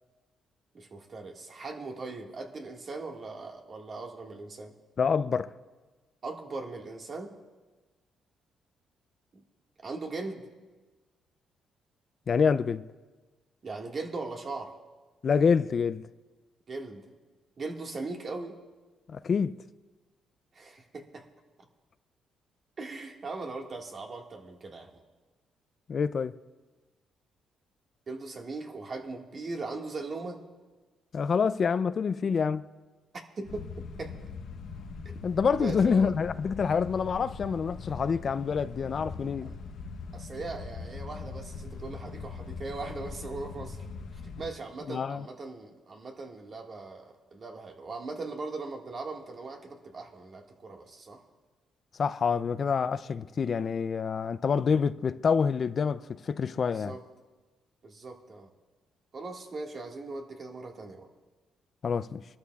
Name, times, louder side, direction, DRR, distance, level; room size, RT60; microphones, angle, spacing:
voice 1, 0.7-4.7 6.2-7.3 9.8-10.5 13.6-14.7 16.7-17.0 17.6-18.6 20.5-21.2 22.8-24.9 28.1-30.4 33.4-34.1 35.1-35.2 35.6-36.1 39.4-39.6 40.1-43.8 44.2-51.2 56.7-57.0 57.8-58.5 59.1-61.1, right 3 dB, 45° right, 1.7 m, -39 dB
voice 2, 5.0-5.5 12.3-12.8 15.2-16.0 19.1-19.5 25.9-26.3 31.1-32.7 35.2-39.5 44.9-45.3 52.0-57.0 61.8-62.2, left 6 dB, 45° left, 0.3 m, -27 dB
sound 1, 33.4-44.5, left 4 dB, 70° left, 0.9 m, -41 dB
23.5 x 13.0 x 2.3 m
cardioid pair, 90°, 0 cm